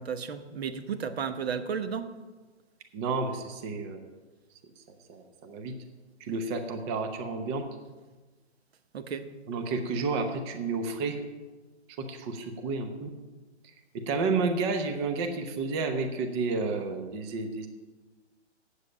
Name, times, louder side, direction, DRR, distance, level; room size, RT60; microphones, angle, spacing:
voice 1, 0.0-2.1 8.9-9.2, right 6 dB, 60° right, 9 dB, 1.1 m, -33 dB
voice 2, 2.9-4.1 4.8-4.9 5.1-5.7 6.3-7.7 9.5-11.2 12.0-13.1 13.9-17.7, right 4 dB, 25° right, 6 dB, 0.8 m, -31 dB
8.1 x 7.7 x 8.4 m, 1.2 s
hypercardioid pair, 145°, 35 cm